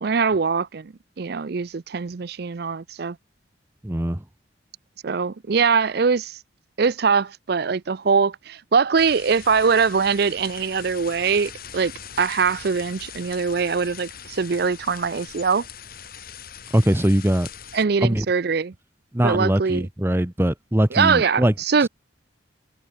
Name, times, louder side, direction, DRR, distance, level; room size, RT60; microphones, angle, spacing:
voice 1, 0.0-3.2 5.0-6.4 6.8-11.9 12.2-15.7 17.7-18.7 19.2-19.8 20.9-21.9, right 5 dB, 55° right, 0.5 m, -22 dB
voice 2, 3.8-4.2 16.7-17.5 18.0-18.3 19.1-21.5 21.8-21.9, right 1 dB, 10° right, 0.8 m, -21 dB
sound 1, 9.0-17.9, left 8 dB, 50° left, 5.7 m, -41 dB
head